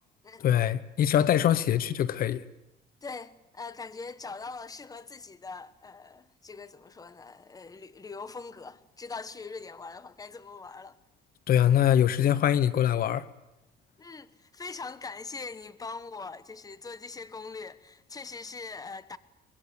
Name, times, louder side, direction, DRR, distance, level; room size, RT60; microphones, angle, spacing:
voice 1, 0.4-2.4 11.5-13.3, left 10 dB, 60° left, 1.0 m, -23 dB
voice 2, 3.0-11.0 14.0-19.2, left 4 dB, 20° left, 1.3 m, -42 dB
25.0 x 22.0 x 8.5 m
cardioid pair, 110°, 17 cm